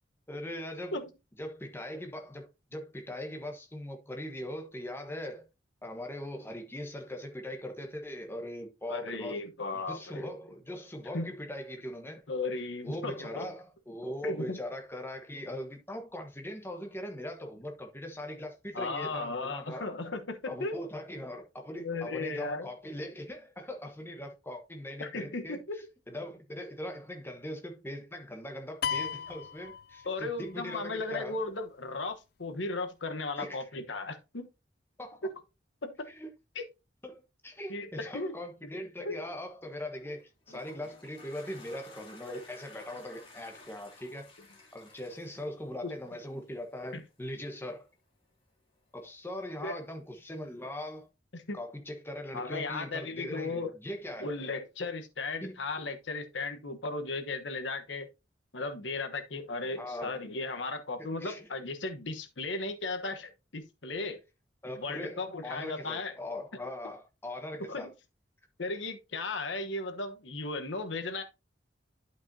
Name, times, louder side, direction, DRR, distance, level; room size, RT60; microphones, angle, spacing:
voice 1, 0.3-1.0 1.4-5.4 5.8-9.4 9.7-12.2 12.8-19.8 20.5-25.6 26.1-31.4 33.4-33.7 35.0-35.3 36.1-36.3 37.0-44.3 44.7-47.9 48.9-51.1 51.5-54.3 55.4-55.6 59.7-60.2 61.2-61.5 64.6-67.9, left 1 dB, 15° left, 1.2 m, -40 dB
voice 2, 8.9-10.3 11.1-11.3 12.3-13.5 14.2-14.6 18.7-20.8 21.7-22.7 25.0-25.6 30.0-34.5 35.2-35.3 35.8-36.1 36.5-36.6 37.7-38.3 39.0-39.2 45.8-45.9 46.9-47.0 49.6-49.8 51.3-51.6 52.3-53.7 54.2-58.1 58.5-64.2 64.8-66.1 67.7-67.9 68.6-71.2, left 3 dB, 90° left, 1.1 m, -36 dB
sound 1, 28.8-30.5, left 8 dB, 55° left, 0.3 m, -35 dB
Toilet flush, 40.1-46.5, left 2 dB, 30° left, 2.4 m, -53 dB
11.5 x 5.3 x 2.7 m
head